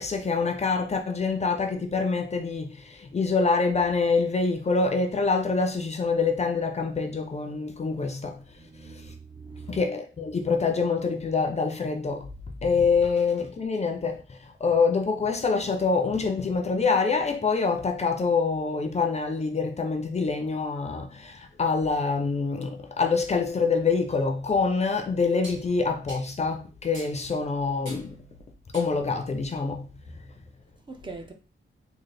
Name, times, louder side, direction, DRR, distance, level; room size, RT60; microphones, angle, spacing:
voice 1, 0.0-8.4 9.0-9.1 9.7-12.3 12.6-28.2 28.7-29.9, left 4 dB, 30° left, 0.5 m, -26 dB
voice 2, 8.6-9.8 13.0-13.2 30.9-31.3, right 4 dB, 25° right, 0.5 m, -42 dB
sound 1, 24.1-24.2 25.4-25.7 26.1-26.3 26.9-27.2 27.9-28.1 28.7-29.0, right 1 dB, 65° right, 1.4 m, -44 dB
3.8 x 2.4 x 3.2 m
wide cardioid pair, 160°, 21 cm